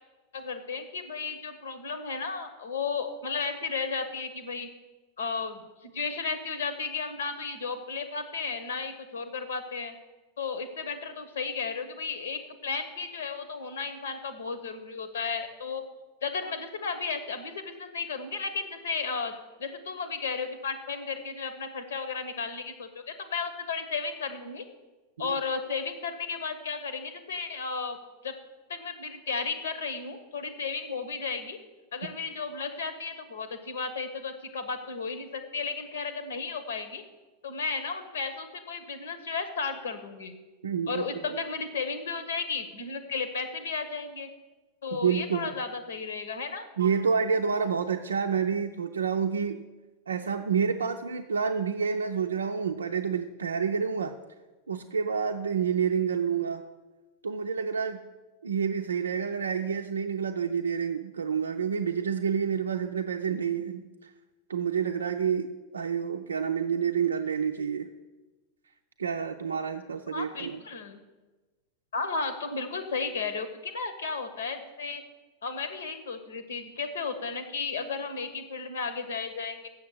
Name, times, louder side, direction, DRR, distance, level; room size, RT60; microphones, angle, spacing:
voice 1, 0.3-4.7 5.2-9.9 10.4-15.8 16.2-19.3 19.6-24.6 25.2-28.0 28.2-28.3 28.7-31.6 31.9-37.0 37.4-40.3 40.9-44.3 44.8-46.6 70.1-71.0 71.9-75.0 75.4-79.7, left 5 dB, 65° left, 10 dB, 1.2 m, -34 dB
voice 2, 40.6-41.0 44.9-45.5 46.8-49.6 50.1-54.2 54.7-56.6 57.2-58.1 58.4-64.1 64.5-67.9 69.0-70.6, right 6 dB, 70° right, 3 dB, 0.5 m, -28 dB
7.5 x 7.0 x 8.0 m, 1.2 s
figure-of-eight pair, 90°, 0 cm